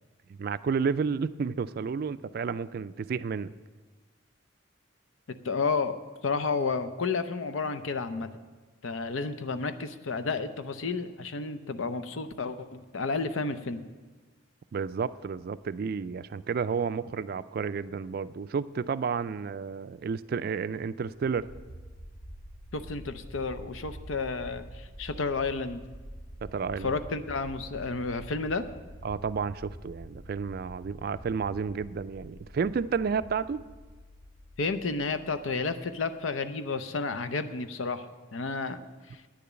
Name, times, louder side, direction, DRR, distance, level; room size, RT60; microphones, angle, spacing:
voice 1, 0.3-3.5 14.7-21.5 26.4-27.0 29.0-33.6, right 5 dB, 50° right, 14 dB, 0.3 m, -31 dB
voice 2, 5.4-8.3 8.8-13.8 22.7-25.8 26.8-28.7 34.6-38.1 38.3-38.8, left 4 dB, 80° left, 11 dB, 0.6 m, -31 dB
sound 1, 21.1-35.9, right 1 dB, 60° left, 2.8 m, -47 dB
9.6 x 6.9 x 8.6 m, 1.4 s
head